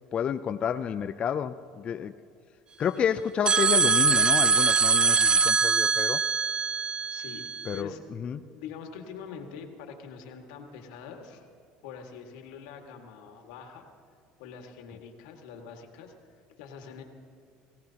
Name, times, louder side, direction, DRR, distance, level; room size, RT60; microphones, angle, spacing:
voice 1, 0.1-2.1 2.8-6.2 7.7-7.9 8.2-8.4, left 8 dB, 40° left, 9 dB, 0.5 m, -30 dB
sound 1, 3.5-7.8, right 5 dB, 30° right, 0.4 m, -23 dB
voice 2, 7.1-7.4 7.7-8.0 8.5-11.4 11.8-13.9 14.4-16.1 16.6-17.0, left 6 dB, 85° left, 3 dB, 1.9 m, -44 dB
22.5 x 16.5 x 2.9 m, 2.5 s
supercardioid pair, 105°, 3 cm